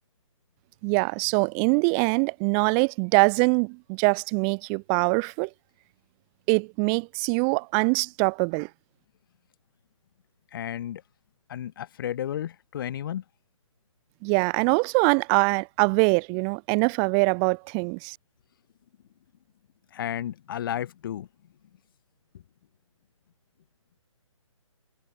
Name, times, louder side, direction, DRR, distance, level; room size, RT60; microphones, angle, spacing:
voice 1, 0.8-5.5 6.5-8.7 14.2-18.1, right 40 dB or more, 25° right, 3.0 m, -23 dB
voice 2, 10.5-11.0 11.5-13.2 19.9-21.3, left 10 dB, 40° left, 2.6 m, -32 dB
figure-of-eight pair, 140°, 17 cm